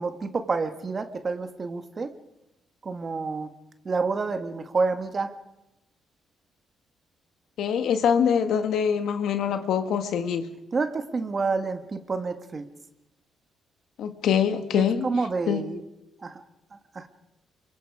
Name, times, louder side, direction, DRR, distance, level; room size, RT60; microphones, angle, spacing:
voice 1, 0.0-2.1 2.8-3.5 3.9-5.3 10.7-12.7 14.7-15.8 16.2-16.4 16.7-17.1, right 4 dB, 35° right, 8 dB, 1.6 m, -29 dB
voice 2, 7.6-10.5 14.0-15.1 15.5-15.6, left 8 dB, 75° left, 8 dB, 1.6 m, -24 dB
27.0 x 23.5 x 4.9 m, 0.94 s
cardioid pair, 90°, 0 cm